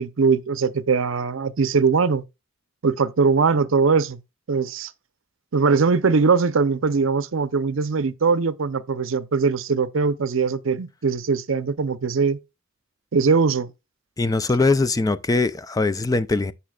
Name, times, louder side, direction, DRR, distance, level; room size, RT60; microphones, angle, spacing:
voice 1, 0.0-2.2 2.8-4.2 4.5-4.9 5.5-12.4 13.1-13.7, right 5 dB, 70° right, 0.6 m, -21 dB
voice 2, 14.2-16.5, left 3 dB, 20° left, 0.4 m, -21 dB
15.0 x 5.7 x 2.3 m
head